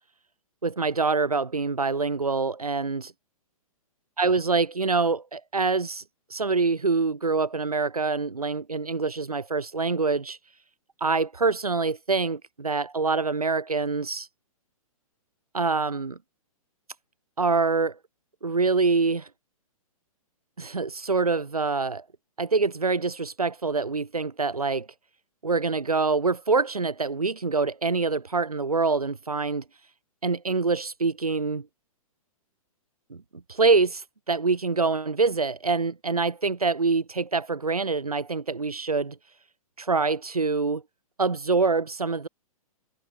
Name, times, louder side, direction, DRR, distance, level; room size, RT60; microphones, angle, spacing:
voice 1, 0.6-3.1 4.2-6.0 6.3-10.4 11.0-14.3 15.5-16.2 17.4-18.0 18.4-19.3 20.6-22.0 22.4-24.9 25.4-29.6 30.2-31.6 33.1-33.2 33.5-39.1 39.8-40.8 41.2-42.3, right 4 dB, 90° right, 1.5 m, -25 dB
figure-of-eight pair, 120°, 19 cm